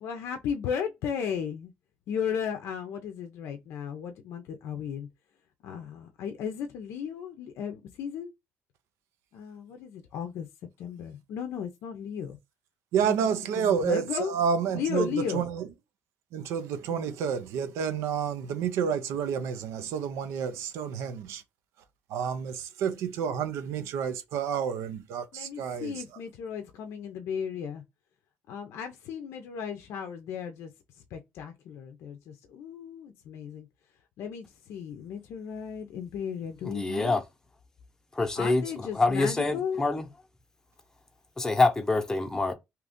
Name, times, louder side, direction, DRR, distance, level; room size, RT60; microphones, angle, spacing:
voice 1, 0.0-1.7 2.1-5.1 5.6-8.3 9.3-10.5 10.8-12.4 13.0-13.1 13.6-14.3 14.7-15.5 16.9-17.1 25.3-27.8 28.5-30.7 31.1-33.7 34.2-37.2 38.4-39.8, left 7 dB, 75° left, 0.5 m, -35 dB
voice 2, 12.9-15.7 16.3-21.4 22.1-26.0, right 7 dB, 85° right, 0.5 m, -29 dB
voice 3, 36.6-37.2 38.1-40.1 41.4-42.5, left 3 dB, 10° left, 0.7 m, -26 dB
2.8 x 2.5 x 3.5 m
cardioid pair, 110°, 5 cm